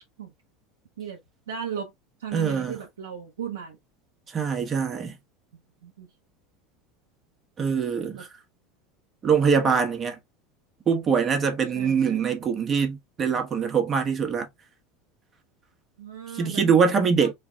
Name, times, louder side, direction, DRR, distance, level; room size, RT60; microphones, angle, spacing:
voice 1, 1.5-1.9 2.2-3.8 5.8-6.1 8.1-8.3 11.7-12.3 16.0-16.7 17.2-17.3, right 8 dB, 90° right, 0.8 m, -36 dB
voice 2, 2.3-2.8 4.3-5.1 7.6-8.3 9.2-10.2 10.9-14.5 16.3-17.3, right 6 dB, 35° right, 1.1 m, -23 dB
3.3 x 2.3 x 3.3 m
hypercardioid pair, 90°, 0 cm